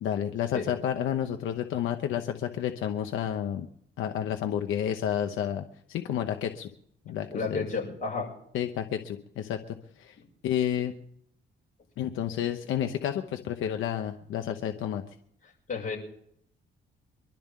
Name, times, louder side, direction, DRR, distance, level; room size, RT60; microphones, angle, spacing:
voice 1, 0.0-3.7 4.0-6.7 7.1-7.7 8.5-10.2 10.4-10.9 12.0-15.0, left 10 dB, 80° left, 6 dB, 1.0 m, -30 dB
voice 2, 7.1-8.3 15.7-16.0, left 4 dB, 40° left, -2 dB, 6.4 m, -32 dB
24.0 x 12.0 x 3.7 m, 0.67 s
cardioid pair, 90°, 20 cm